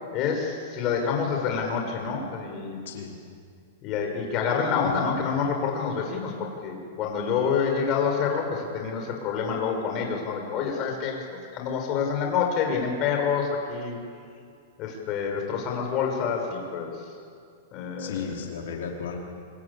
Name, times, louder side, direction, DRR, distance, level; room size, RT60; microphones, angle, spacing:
voice 1, 0.1-2.8 3.8-11.2 11.5-14.0 14.8-16.9 17.7-18.3, left 6 dB, 35° left, 2 dB, 6.2 m, -27 dB
voice 2, 18.0-19.2, left 7 dB, 75° left, 0 dB, 4.6 m, -34 dB
27.0 x 25.5 x 8.6 m, 2.2 s
supercardioid pair, 155°, 0 cm